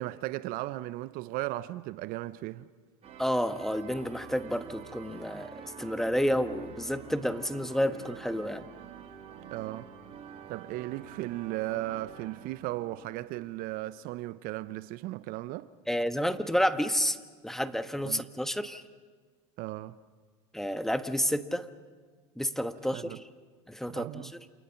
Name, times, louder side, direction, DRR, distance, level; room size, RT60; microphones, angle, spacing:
voice 1, 0.0-2.7 9.5-9.9 10.5-15.7 18.0-18.2 19.6-20.0 22.9-23.2 23.9-24.3, right 17 dB, 55° right, 0.8 m, -36 dB
sound 1, 3.0-14.0, right 7 dB, 35° right, 2.9 m, -48 dB
voice 2, 3.2-8.7 15.9-17.2 17.4-18.8 20.5-21.7 22.4-23.2 23.7-24.2, equal, ahead, 1.3 m, -30 dB
28.5 x 28.5 x 5.9 m
hypercardioid pair, 90°, 18 cm